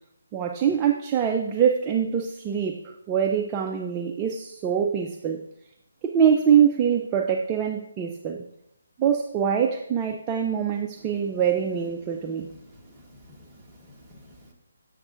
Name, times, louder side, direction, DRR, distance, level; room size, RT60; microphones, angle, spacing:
voice 1, 0.3-2.8 3.1-5.4 6.0-8.4 9.0-12.5, right 8 dB, 15° right, 3 dB, 0.3 m, -24 dB
voice 2, 12.7-14.5, left 1 dB, ahead, -8 dB, 1.2 m, -51 dB
7.8 x 7.0 x 2.5 m, 0.77 s
hypercardioid pair, 165°, 0 cm